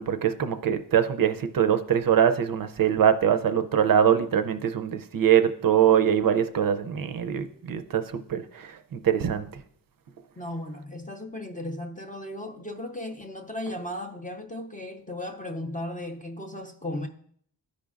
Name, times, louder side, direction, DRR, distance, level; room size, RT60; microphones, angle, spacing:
voice 1, 0.0-9.5, right 9 dB, 55° right, 0.5 m, -23 dB
voice 2, 10.4-17.1, left 1 dB, 20° left, 0.4 m, -36 dB
13.0 x 5.1 x 2.4 m
wide cardioid pair, 180°, 43 cm